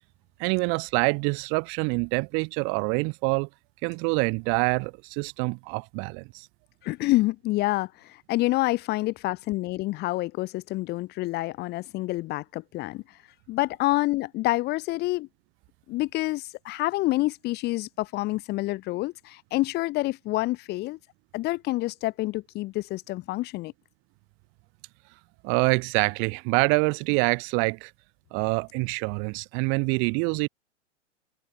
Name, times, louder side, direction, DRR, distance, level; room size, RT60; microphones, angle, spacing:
voice 1, 0.4-3.5 3.8-6.5 25.4-27.9 28.3-30.5, right 34 dB, 35° right, 3.6 m, -26 dB
voice 2, 6.8-13.0 13.5-15.3 15.9-21.0 21.3-23.7, left 19 dB, 25° left, 2.3 m, -27 dB
figure-of-eight pair, 110°, 37 cm